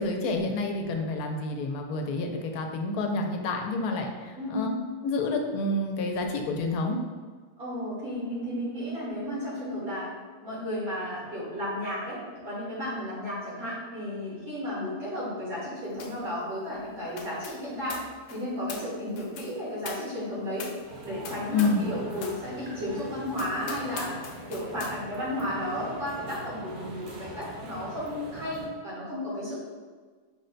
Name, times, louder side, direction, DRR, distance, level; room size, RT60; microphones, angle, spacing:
voice 1, 0.0-4.7 5.0-7.0 21.5-21.9, left 2 dB, 85° left, 3 dB, 1.1 m, -29 dB
voice 2, 4.3-4.7 7.6-10.1 10.4-18.0 18.3-20.7 21.0-24.1 24.5-29.6, left 1 dB, 75° right, -9 dB, 2.1 m, -33 dB
sound 1, 16.0-16.3 16.5-21.9 22.2-22.4 22.9-23.0 23.3-25.0, left 5 dB, 65° left, 0.8 m, -43 dB
sound 2, 20.9-28.7, right 1 dB, 45° right, 0.7 m, -42 dB
5.5 x 2.1 x 3.9 m, 1.5 s
omnidirectional pair, 1.6 m